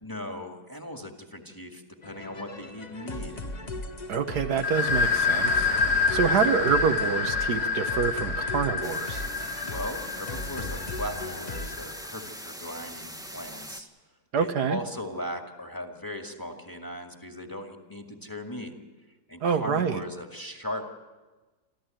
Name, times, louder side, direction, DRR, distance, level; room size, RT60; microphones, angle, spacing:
voice 1, 0.0-3.4 9.6-13.9 14.4-18.7 19.3-20.9, left 1 dB, 15° left, 3 dB, 2.0 m, -38 dB
sound 1, 2.0-11.8, left 2 dB, 30° left, 1.1 m, -38 dB
voice 2, 4.1-5.7 6.1-9.2 14.3-14.8 19.4-20.0, right 6 dB, 80° right, 7 dB, 1.8 m, -26 dB
sound 2, 4.6-12.1, left 4 dB, 75° left, 3.0 m, -28 dB
sound 3, 8.8-13.8, equal, ahead, 1.2 m, -42 dB
27.5 x 13.5 x 9.1 m, 1.2 s
omnidirectional pair, 1.7 m